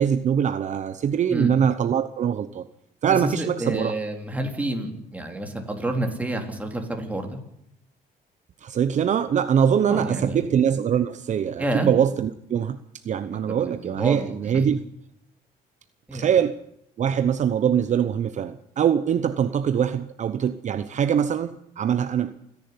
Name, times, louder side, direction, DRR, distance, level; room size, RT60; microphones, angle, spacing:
voice 1, 0.0-2.7 3.0-3.9 8.6-12.8 13.0-14.8 16.1-16.6 17.0-22.4, right 8 dB, 45° right, 11 dB, 0.9 m, -23 dB
voice 2, 3.1-7.3 9.9-10.4 11.6-11.9 13.3-14.6 16.1-16.3, right 1 dB, 10° right, 3 dB, 3.9 m, -29 dB
28.0 x 11.0 x 9.7 m, 0.78 s
cardioid pair, 110°, 17 cm